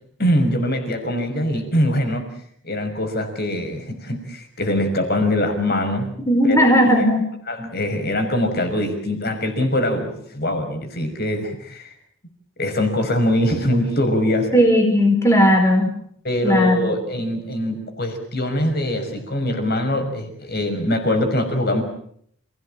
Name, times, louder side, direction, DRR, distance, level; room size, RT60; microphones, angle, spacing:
voice 1, 0.2-2.3 2.6-6.1 6.4-7.1 7.5-11.9 12.6-14.5 16.2-21.8, left 1 dB, 45° left, 6 dB, 5.9 m, -23 dB
voice 2, 6.3-7.3 14.5-15.9 16.4-16.9, equal, 10° left, 2 dB, 4.4 m, -16 dB
29.0 x 17.5 x 8.9 m, 0.67 s
head